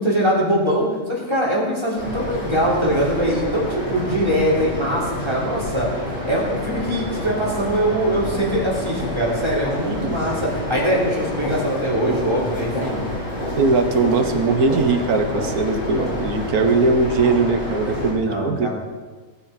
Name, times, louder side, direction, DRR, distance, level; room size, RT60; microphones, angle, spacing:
voice 1, 0.0-5.9 6.2-13.0 18.2-18.7, equal, 20° right, -4 dB, 3.9 m, -22 dB
sound 1, 2.0-18.1, left 1 dB, 55° left, 5.5 m, -28 dB
voice 2, 9.8-10.2 13.6-18.7, right 4 dB, 90° right, 5 dB, 1.7 m, -20 dB
19.5 x 9.2 x 4.4 m, 1.4 s
omnidirectional pair, 1.5 m